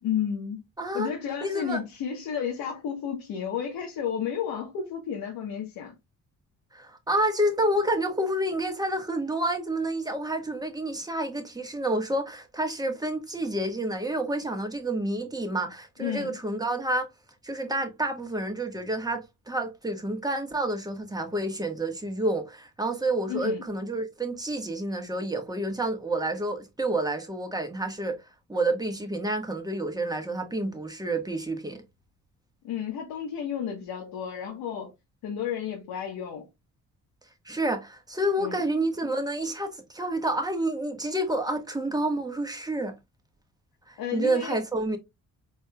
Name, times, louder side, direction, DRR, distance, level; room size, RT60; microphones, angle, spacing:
voice 1, 0.0-0.6 0.9-5.9 16.0-16.4 23.3-23.6 32.6-34.9 35.2-36.5 38.4-38.6 44.0-44.6, left 8 dB, 90° left, 1.2 m, -32 dB
voice 2, 0.8-1.1 1.4-1.8 6.7-17.1 17.4-28.2 28.5-31.8 37.4-42.9 43.9-45.0, right 1 dB, 10° right, 1.4 m, -29 dB
4.4 x 4.4 x 2.2 m
cardioid pair, 80°, 35 cm